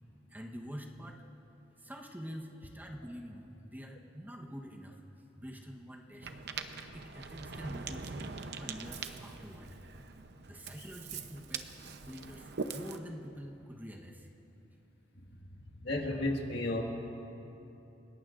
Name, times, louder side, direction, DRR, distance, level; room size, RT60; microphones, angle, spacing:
voice 1, 0.3-1.2 1.8-5.0 5.4-6.3 6.9-8.2 8.5-9.8 10.5-11.7 12.1-14.3, equal, 10° right, 0 dB, 1.0 m, -46 dB
Ocean, 6.2-13.0, right 4 dB, 60° right, 0.7 m, -42 dB
voice 2, 15.8-16.8, left 2 dB, 60° left, 0 dB, 1.8 m, -32 dB
30.0 x 18.0 x 2.5 m, 2.9 s
head